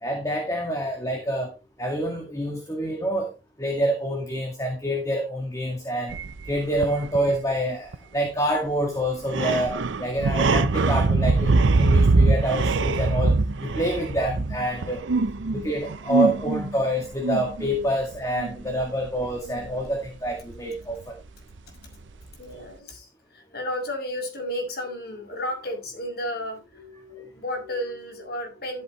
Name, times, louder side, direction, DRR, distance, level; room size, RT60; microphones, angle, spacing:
voice 1, 0.0-1.5 1.8-3.3 3.6-6.2 6.5-15.0 15.5-21.1, equal, 20° left, 2.0 m, -27 dB
sound 1, 6.1-7.4 7.9-8.0 8.3-8.4 9.0-20.6 20.9-21.0, right 3 dB, 85° right, 0.7 m, -23 dB
voice 2, 21.7-22.0 22.3-28.8, left 1 dB, 55° left, 5.9 m, -33 dB
14.0 x 8.1 x 3.2 m
head